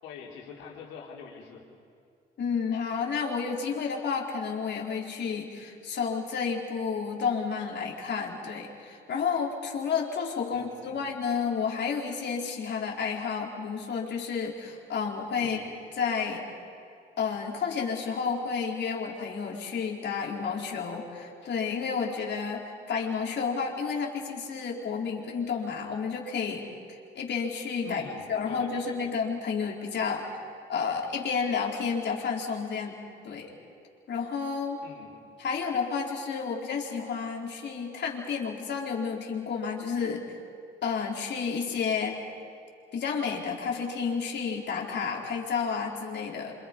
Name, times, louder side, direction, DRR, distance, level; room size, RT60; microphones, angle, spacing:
voice 1, 0.0-1.6 10.5-11.0 15.4-15.7 27.8-29.2 34.8-35.2, left 6 dB, 85° left, -1 dB, 4.0 m, -45 dB
voice 2, 2.4-15.6 16.0-16.4 17.2-26.6 27.1-28.0 28.3-30.3 30.7-33.0 33.2-33.5 34.1-34.8 35.4-40.4 40.8-42.2 42.9-46.5, left 5 dB, 60° left, -1 dB, 4.3 m, -31 dB
27.5 x 26.5 x 5.5 m, 2.5 s
supercardioid pair, 65°, 20 cm